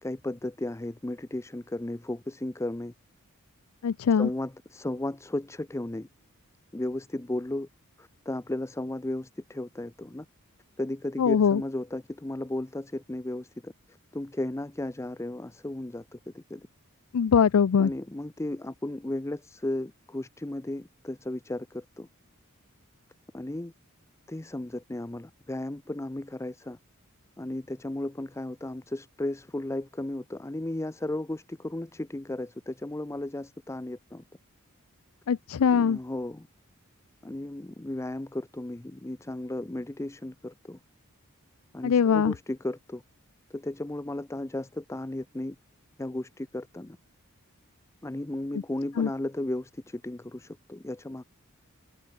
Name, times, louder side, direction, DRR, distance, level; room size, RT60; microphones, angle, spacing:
voice 1, 0.0-2.9 4.1-6.1 6.7-7.7 8.0-10.3 10.8-13.7 14.1-16.7 17.8-22.1 23.3-23.7 24.3-26.8 27.4-34.2 35.6-36.5 37.2-40.8 41.7-43.0 43.5-45.6 46.0-47.0 48.0-51.3, left 1 dB, 15° left, 0.5 m, -35 dB
voice 2, 3.8-4.3 11.2-11.6 17.1-17.9 35.3-36.0 41.8-42.3 49.0-49.1, left 7 dB, 75° left, 0.4 m, -22 dB
head